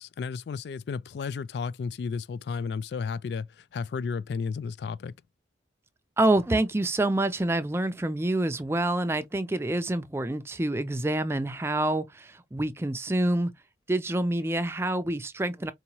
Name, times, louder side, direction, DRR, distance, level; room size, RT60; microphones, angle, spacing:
voice 1, 0.0-5.1, left 5 dB, 70° left, 0.3 m, -33 dB
voice 2, 6.2-13.5 13.9-15.7, right 1 dB, 15° right, 0.4 m, -27 dB
4.5 x 2.9 x 2.8 m
head